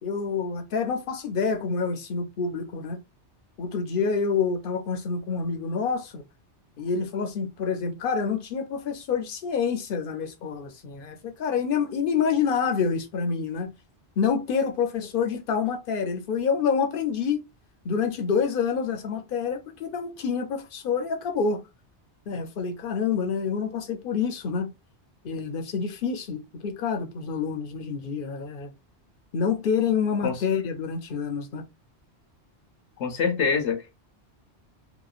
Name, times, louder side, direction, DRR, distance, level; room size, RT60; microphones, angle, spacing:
voice 1, 0.0-3.0 3.6-6.2 6.8-13.7 14.2-17.4 17.8-21.6 22.3-24.7 25.2-28.7 29.3-31.6, left 6 dB, 60° left, 0.7 m, -27 dB
voice 2, 33.0-34.0, left 5 dB, 85° left, 1.0 m, -25 dB
2.9 x 2.2 x 2.4 m
omnidirectional pair, 1.2 m